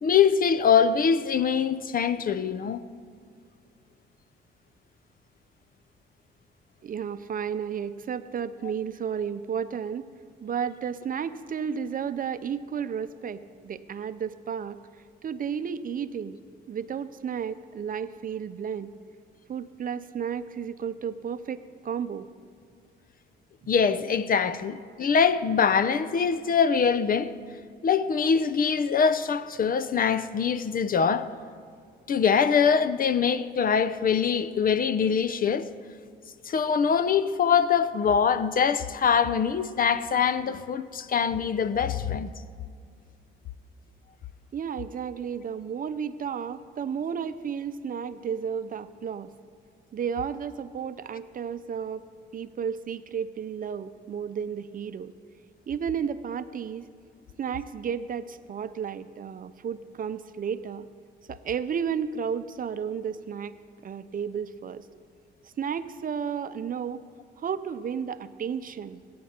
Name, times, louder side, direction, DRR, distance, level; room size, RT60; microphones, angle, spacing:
voice 1, 0.0-2.8 23.7-27.3 27.8-31.3 32.1-35.7 36.5-42.3, left 6 dB, 45° left, 0.6 m, -23 dB
voice 2, 6.8-10.1 10.4-14.8 15.2-16.4 16.7-18.9 19.5-22.3 44.5-49.3 49.9-52.0 52.3-55.1 55.7-56.9 57.4-60.9 61.3-63.6 63.8-64.9 65.4-67.0 67.4-69.0, right 7 dB, 45° right, 0.6 m, -32 dB
21.5 x 9.4 x 4.4 m
cardioid pair, 90°, 20 cm